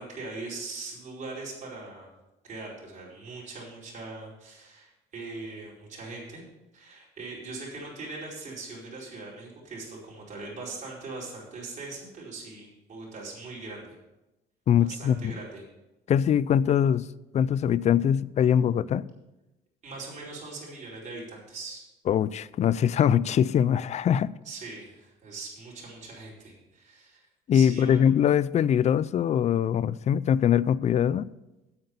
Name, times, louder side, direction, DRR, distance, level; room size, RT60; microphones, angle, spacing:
voice 1, 0.0-2.1 2.4-6.4 6.7-14.0 14.8-15.6 19.8-21.8 24.4-27.3 27.5-28.0, right 3 dB, 45° right, 4.7 m, -41 dB
voice 2, 14.7-15.4 16.1-17.1 17.3-19.1 22.1-24.3 27.5-31.3, left 9 dB, 40° left, 0.4 m, -22 dB
8.7 x 7.9 x 6.9 m
cardioid pair, 110°, 17 cm